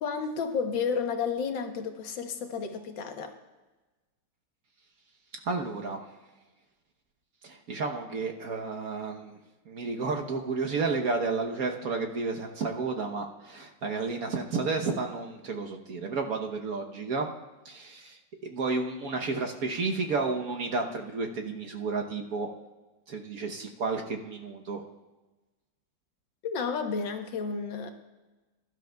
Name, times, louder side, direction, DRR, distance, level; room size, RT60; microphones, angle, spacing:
voice 1, 0.0-3.3 26.4-27.9, left 5 dB, 80° left, 5 dB, 1.7 m, -31 dB
voice 2, 5.4-6.0 7.4-9.4 9.7-17.3 17.6-22.5 23.1-24.8, right 4 dB, 55° right, 2 dB, 1.3 m, -31 dB
21.5 x 11.5 x 2.3 m, 1.2 s
omnidirectional pair, 2.0 m